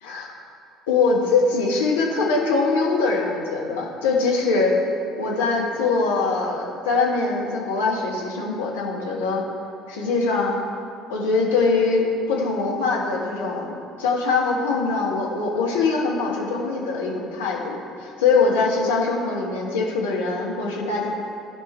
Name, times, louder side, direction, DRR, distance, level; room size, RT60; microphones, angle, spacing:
voice 1, 0.0-0.3 0.9-4.7 5.2-9.4 9.9-10.6 11.1-21.1, left 4 dB, 70° left, -3 dB, 1.6 m, -22 dB
15.0 x 5.4 x 4.6 m, 2.4 s
figure-of-eight pair, 55°, 0 cm